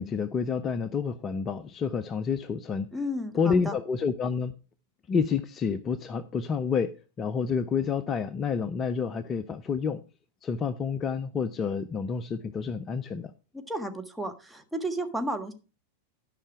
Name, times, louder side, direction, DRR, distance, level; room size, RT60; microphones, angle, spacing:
voice 1, 0.0-2.9 3.3-4.5 5.1-6.9 7.2-10.0 10.4-13.3, left 6 dB, 25° left, 0.5 m, -29 dB
voice 2, 2.9-3.7 13.5-15.5, equal, 5° right, 1.4 m, -33 dB
12.5 x 5.5 x 4.8 m
figure-of-eight pair, 90°, 0 cm